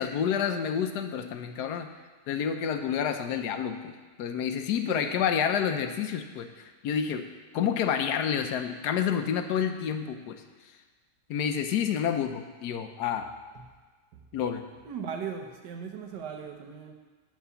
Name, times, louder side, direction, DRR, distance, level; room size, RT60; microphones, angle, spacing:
voice 1, 0.0-1.9 2.3-6.5 6.8-7.3 7.5-10.4 11.3-13.3 14.3-14.6, left 8 dB, 75° left, 7 dB, 1.2 m, -29 dB
voice 2, 4.9-5.3 13.6-13.7 14.8-16.9, right 6 dB, 80° right, 3 dB, 1.6 m, -38 dB
9.0 x 4.8 x 6.9 m, 1.4 s
omnidirectional pair, 1.8 m